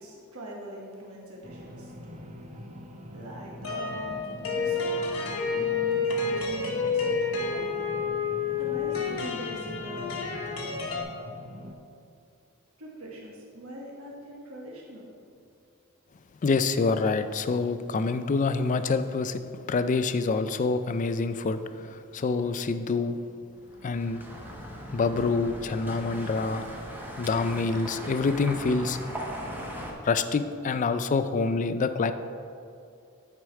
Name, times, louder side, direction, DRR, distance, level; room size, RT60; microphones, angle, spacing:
voice 1, 0.0-2.8 3.1-4.2 4.5-5.1 5.4-7.2 7.5-7.7 8.6-10.1 12.8-15.1, right 1 dB, 80° right, -3 dB, 1.3 m, -43 dB
sound 1, 1.4-11.7, equal, 35° right, 0.7 m, -43 dB
sound 2, 3.6-11.0, left 4 dB, 70° left, 1.2 m, -29 dB
voice 2, 16.4-23.2 23.8-24.2 24.9-26.6 27.2-29.0 30.0-32.1, left 4 dB, 35° left, 11 dB, 0.3 m, -26 dB
sound 3, 23.6-29.9, equal, 10° right, 0.9 m, -39 dB
9.6 x 4.8 x 4.5 m, 2.4 s
head